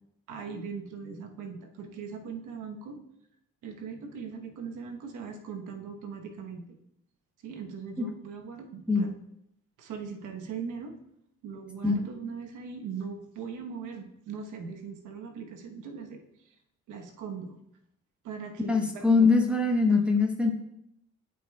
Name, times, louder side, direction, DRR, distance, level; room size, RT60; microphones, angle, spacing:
voice 1, 0.3-3.0 3.6-6.7 7.4-9.1 9.8-10.9 11.4-16.2 16.4-16.6 16.9-17.5 18.2-19.3 19.9-20.1, right 6 dB, 85° right, 3 dB, 1.1 m, -40 dB
voice 2, 18.7-20.5, left 4 dB, 5° right, 0 dB, 0.9 m, -23 dB
13.0 x 5.0 x 2.3 m, 0.78 s
cardioid pair, 90°, 30 cm